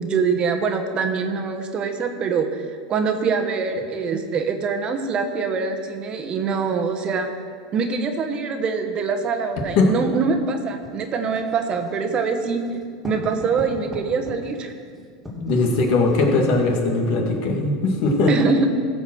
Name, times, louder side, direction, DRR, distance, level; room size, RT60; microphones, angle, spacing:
voice 1, 0.0-2.6 2.9-7.3 7.7-12.6 13.0-14.7 18.3-18.7, right 5 dB, 35° right, 5 dB, 1.2 m, -24 dB
Writing, 10.8-16.8, left 1 dB, ahead, 2.7 m, -40 dB
voice 2, 15.4-18.4, left 3 dB, 60° left, 1 dB, 2.1 m, -19 dB
15.5 x 5.2 x 6.3 m, 2.1 s
supercardioid pair, 110°, 3 cm